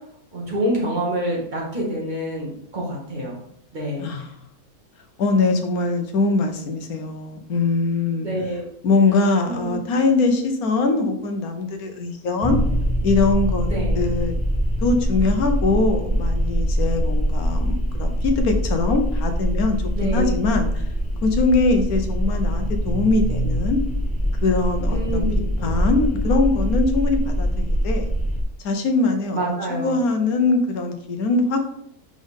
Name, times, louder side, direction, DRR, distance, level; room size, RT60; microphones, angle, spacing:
voice 1, 0.3-3.3 3.7-4.1 8.2-8.7 9.5-9.8 13.7-14.0 20.0-20.4 24.9-25.5 29.3-30.0, right 1 dB, 30° right, -4 dB, 2.2 m, -26 dB
voice 2, 4.0-4.4 5.2-8.3 8.8-12.6 13.0-13.7 13.9-14.4 14.8-20.8 21.2-23.8 24.4-25.3 25.6-28.1 28.6-29.4 29.7-31.6, left 3 dB, 90° left, 5 dB, 1.4 m, -22 dB
sound 1, 12.4-28.4, equal, 5° left, 0.9 m, -23 dB
5.5 x 5.0 x 3.7 m, 0.70 s
omnidirectional pair, 1.5 m